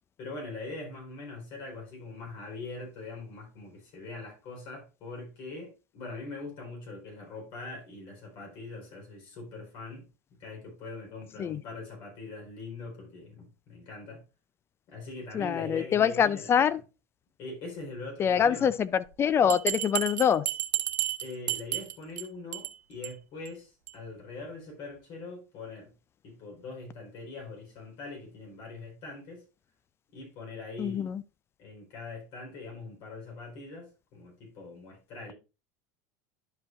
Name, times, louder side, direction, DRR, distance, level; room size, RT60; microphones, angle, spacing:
voice 1, 0.2-10.1 10.4-14.2 14.9-16.6 17.4-18.7 21.2-25.9 26.2-29.4 30.1-31.1 31.6-35.3, left 3 dB, 50° left, 3.9 m, -42 dB
voice 2, 15.3-16.8 18.2-20.5 30.8-31.2, left 8 dB, 25° left, 0.4 m, -25 dB
Bell, 19.5-22.2 22.5-22.7 23.0-23.1 23.5-23.6 23.9-24.0, right 14 dB, 85° right, 0.8 m, -31 dB
11.0 x 5.2 x 2.4 m
supercardioid pair, 110°, 9 cm